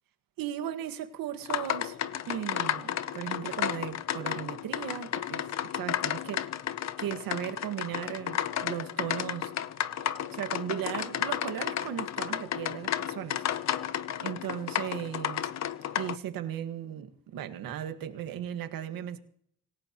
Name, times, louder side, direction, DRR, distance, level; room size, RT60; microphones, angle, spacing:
voice 1, 0.4-2.0 2.3-5.4 5.7-6.5 7.0-9.5 10.3-13.4 14.2-15.5 15.9-19.2, right 10 dB, 80° right, 1.8 m, -36 dB
sound 1, 1.5-16.2, left 10 dB, 50° left, 0.7 m, -33 dB
26.0 x 16.5 x 3.0 m
cardioid pair, 145°, 34 cm